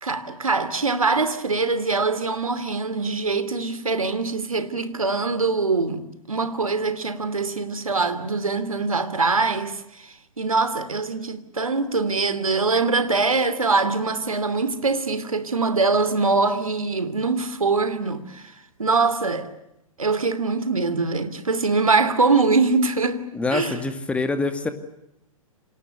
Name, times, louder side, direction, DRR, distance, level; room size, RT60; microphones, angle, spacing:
voice 1, 0.0-10.1 10.4-18.4 18.8-19.5 20.0-23.2 23.5-23.8, right 4 dB, 75° right, 2.9 m, -23 dB
voice 2, 23.3-24.7, left 3 dB, 5° left, 2.2 m, -25 dB
29.0 x 26.5 x 6.8 m
figure-of-eight pair, 115°, 18 cm